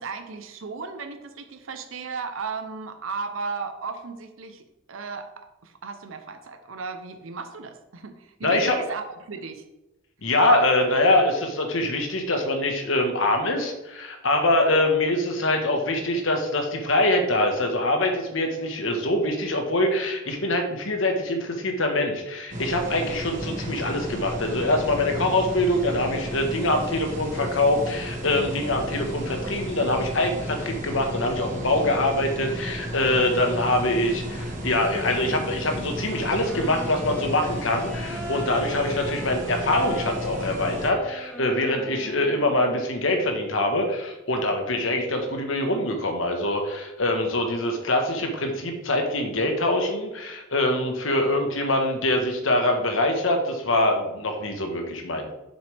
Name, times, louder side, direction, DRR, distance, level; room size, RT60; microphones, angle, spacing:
voice 1, 0.0-4.6 4.9-9.6, right 4 dB, 90° right, 7 dB, 0.7 m, -35 dB
voice 2, 8.4-8.8 10.2-55.3, left 1 dB, 80° left, 3 dB, 1.4 m, -24 dB
sound 1, 22.5-40.9, equal, 40° right, 1.2 m, -33 dB
Wind instrument woodwind instrument, 36.0-43.0, equal, 10° left, 1.6 m, -39 dB
7.0 x 7.0 x 3.4 m, 0.97 s
head